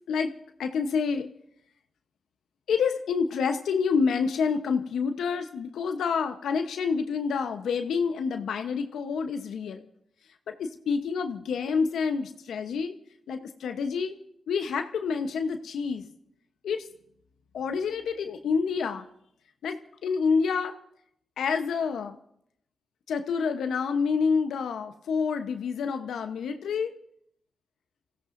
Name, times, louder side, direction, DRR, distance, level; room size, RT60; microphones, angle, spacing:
voice 1, 0.6-1.3 2.7-9.8 10.5-12.9 13.3-14.1 14.5-16.0 16.6-16.8 17.5-19.0 19.6-19.8 20.0-20.7 21.4-22.2 23.1-26.9, left 5 dB, 80° left, 7 dB, 0.9 m, -28 dB
28.5 x 15.5 x 2.6 m, 0.72 s
supercardioid pair, 40°, 0 cm